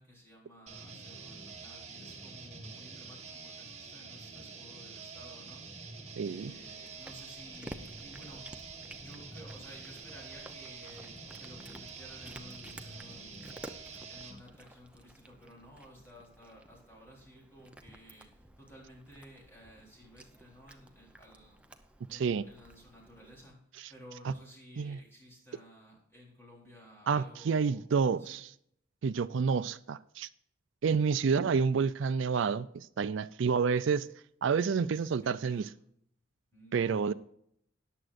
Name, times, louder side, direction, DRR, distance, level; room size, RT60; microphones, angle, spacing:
voice 1, 0.0-5.8 6.2-8.5 8.9-13.8 14.1-21.6 22.1-23.6 23.9-27.8 28.1-28.4 34.8-34.9 35.2-35.8 36.5-37.1, equal, 10° left, 3.8 m, -54 dB
sound 1, 0.7-14.4, right 4 dB, 30° right, 1.9 m, -47 dB
voice 2, 6.2-6.5 22.1-22.4 23.8-23.9 24.2-24.3 24.8-25.0 27.1-28.5 29.0-30.3 30.8-34.1 34.4-35.7 36.7-37.1, right 5 dB, 70° right, 0.4 m, -29 dB
Cat, 6.4-23.5, right 1 dB, 5° right, 0.6 m, -53 dB
14.0 x 10.0 x 2.5 m
head